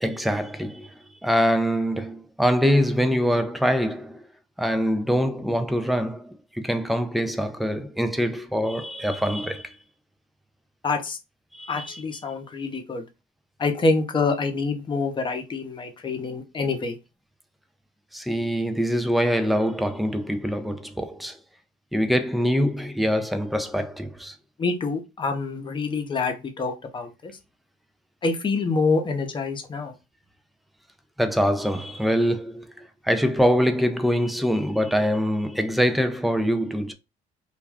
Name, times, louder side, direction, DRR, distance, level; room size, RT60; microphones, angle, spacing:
voice 1, 0.0-4.2 4.6-9.8 11.5-12.0 18.1-21.4 21.9-24.4 31.2-36.9, equal, ahead, 0.4 m, -24 dB
voice 2, 10.8-11.2 11.7-13.0 13.6-17.0 24.6-27.4 28.2-29.9, left 3 dB, 30° left, 0.7 m, -26 dB
2.4 x 2.2 x 3.3 m
cardioid pair, 110°, 17 cm